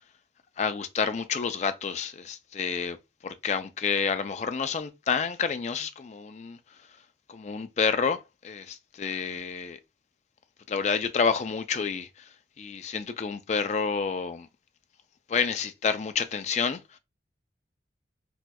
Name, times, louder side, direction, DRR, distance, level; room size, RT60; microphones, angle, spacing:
voice 1, 0.6-3.0 3.2-6.6 7.3-8.2 8.4-9.8 10.7-12.1 12.6-14.5 15.3-16.8, left 5 dB, 35° left, 0.3 m, -29 dB
4.2 x 2.3 x 2.2 m
head